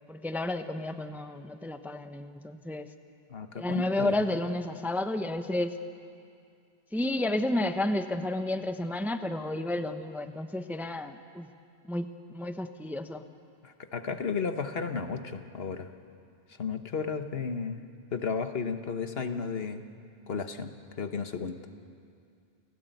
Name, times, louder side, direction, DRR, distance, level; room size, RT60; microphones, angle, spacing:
voice 1, 0.1-2.9 3.5-5.7 6.9-11.5 11.9-13.2, left 1 dB, ahead, 8 dB, 0.8 m, -31 dB
voice 2, 3.3-4.2 13.6-15.9 16.6-17.8 18.1-19.8 20.3-20.7 21.0-21.6, left 5 dB, 65° left, 8 dB, 1.4 m, -33 dB
29.5 x 17.0 x 9.1 m, 2.4 s
omnidirectional pair, 1.1 m